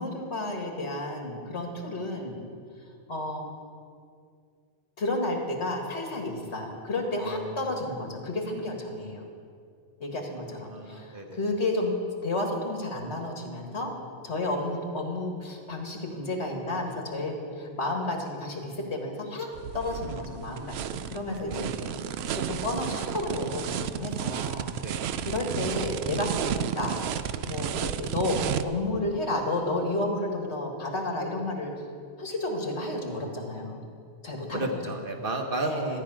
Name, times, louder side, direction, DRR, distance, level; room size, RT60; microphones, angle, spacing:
voice 1, 0.0-2.4 2.8-3.5 5.0-9.2 10.0-12.0 12.2-13.9 14.2-21.7 22.3-24.7 25.2-27.0 27.4-31.7 32.2-33.9 34.2-34.8 35.6-36.0, left 2 dB, 65° left, 1 dB, 2.2 m, -31 dB
voice 2, 7.2-7.8 10.7-11.4 21.3-21.9 24.7-25.1 34.5-36.0, right 2 dB, 50° right, 3 dB, 1.3 m, -34 dB
sound 1, 19.5-28.6, right 9 dB, 70° right, 0.8 m, -32 dB
14.0 x 5.9 x 9.9 m, 2.3 s
omnidirectional pair, 1.2 m